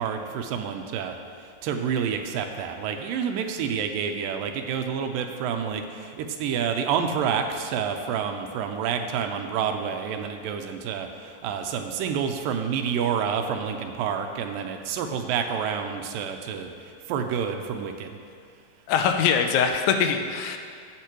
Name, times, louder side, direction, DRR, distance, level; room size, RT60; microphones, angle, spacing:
voice 1, 0.0-18.2, right 7 dB, 85° right, 5 dB, 2.3 m, -29 dB
voice 2, 18.9-20.6, left 7 dB, 85° left, 6 dB, 2.5 m, -22 dB
16.5 x 6.6 x 3.0 m, 2.2 s
omnidirectional pair, 4.0 m